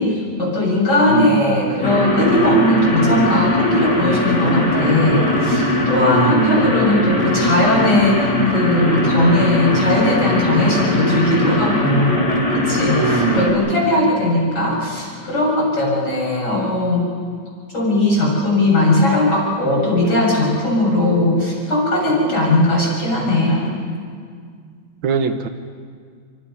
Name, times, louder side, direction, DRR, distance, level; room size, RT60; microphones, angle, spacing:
voice 1, 0.0-12.1 12.5-17.1 17.7-23.7, left 1 dB, 60° left, -2 dB, 8.1 m, -18 dB
voice 2, 1.1-1.6 6.1-6.7 13.0-13.6 25.0-25.5, right 7 dB, 80° right, 8 dB, 1.8 m, -21 dB
sound 1, 1.8-13.5, left 1 dB, 40° left, 4.9 m, -20 dB
28.5 x 24.0 x 5.8 m, 2.1 s
omnidirectional pair, 2.1 m